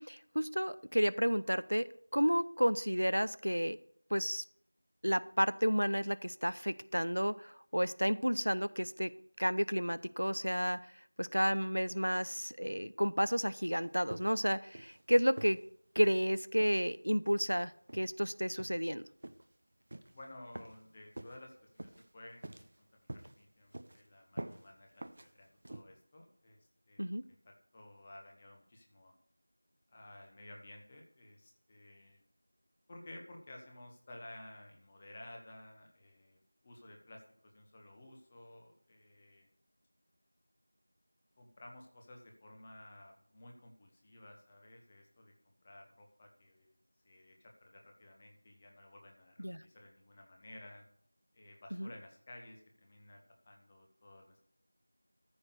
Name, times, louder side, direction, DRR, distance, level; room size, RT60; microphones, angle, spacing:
voice 1, 0.0-3.8 4.1-4.4 5.0-9.1 9.4-10.8 11.2-15.6 15.9-19.1 27.0-27.2 49.4-49.6 51.7-51.9, equal, 85° right, 16 dB, 0.7 m, -31 dB
sound 1, 14.1-14.5 14.7-15.0 15.4-15.6 16.0-16.2 16.6-16.8 17.3-17.5 17.9-18.1 18.6-18.9 19.2-19.4 19.9-20.1 20.5-20.8 21.2-21.4 21.8-22.1 22.4-22.8 23.1-23.4 23.7-24.0 24.4-24.6 25.0-25.3 25.6-25.8, right 1 dB, 30° right, 0.7 m, -46 dB
voice 2, 20.1-25.0 25.3-26.6 26.9-29.1 29.9-32.2 32.9-39.5 41.4-46.8 47.0-50.8 51.3-53.2 53.4-54.4, left 1 dB, 15° left, 1 dB, 1.1 m, -54 dB
14.0 x 6.1 x 6.6 m, 0.65 s
figure-of-eight pair, 175°, 0 cm